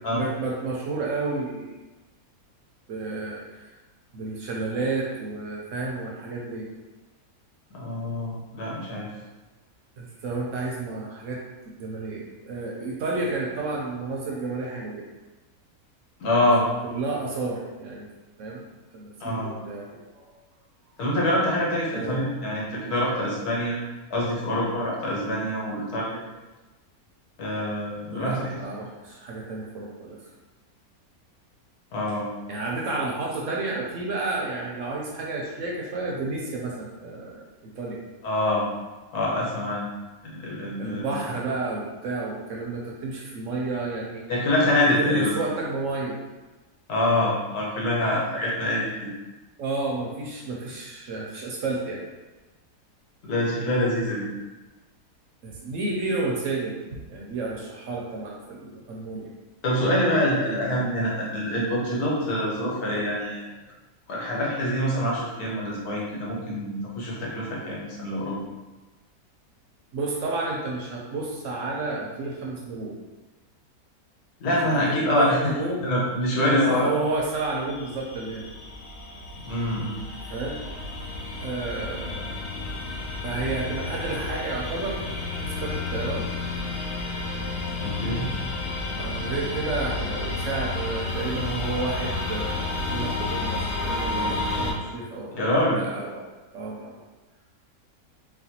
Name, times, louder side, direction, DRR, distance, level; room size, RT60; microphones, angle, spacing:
voice 1, 0.0-1.8 2.9-3.7 4.1-6.7 10.0-11.4 11.7-15.0 16.6-18.1 18.4-18.6 18.9-20.3 21.9-22.3 28.1-30.2 32.5-38.0 40.8-44.2 45.0-46.2 49.6-52.0 55.4-56.8 57.1-59.3 69.9-73.0 74.5-75.9 76.3-78.5 80.3-80.6 81.4-82.5 83.2-85.0 85.4-86.3 89.0-97.0, right 3 dB, 65° right, -2 dB, 0.8 m, -31 dB
voice 2, 7.7-9.1 16.2-16.6 19.2-19.5 21.0-23.8 24.1-26.2 27.4-28.5 31.9-32.3 38.2-38.6 39.1-39.9 40.2-41.2 44.3-45.3 46.9-49.1 53.2-54.3 59.6-63.4 64.1-68.4 74.4-75.5 75.8-76.9 79.4-80.0 87.8-88.3 95.3-95.8, left 1 dB, 90° left, -4 dB, 1.4 m, -25 dB
sound 1, 77.0-94.7, left 3 dB, 65° left, 0.6 m, -31 dB
4.2 x 2.2 x 2.8 m, 1.1 s
omnidirectional pair, 1.6 m